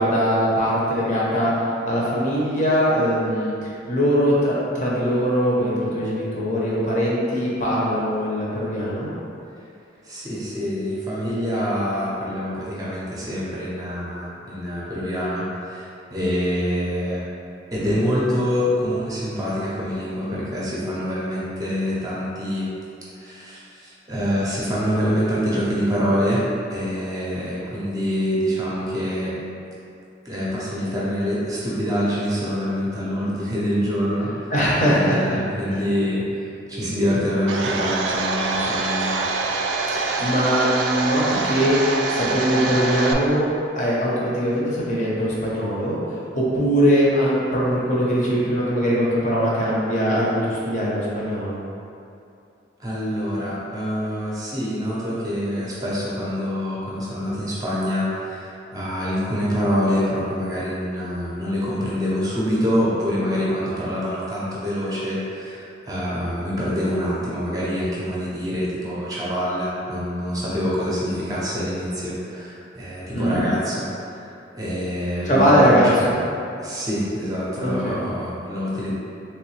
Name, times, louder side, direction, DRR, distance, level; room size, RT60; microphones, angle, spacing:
voice 1, 0.0-1.5 1.9-9.1 34.5-35.2 35.7-35.8 39.9-41.8 42.1-43.5 43.8-46.0 46.3-51.6 73.1-73.5 75.2-76.2 77.6-78.0, equal, 40° left, -6 dB, 0.7 m, -21 dB
voice 2, 10.0-17.2 17.7-22.7 23.2-26.4 26.7-29.3 30.2-34.5 34.9-39.2 52.8-76.1 76.6-78.9, equal, 20° right, -7 dB, 0.6 m, -25 dB
Domestic sounds home sounds, 37.5-43.1, right 3 dB, 85° right, 0.3 m, -25 dB
3.1 x 3.1 x 3.1 m, 2.6 s
head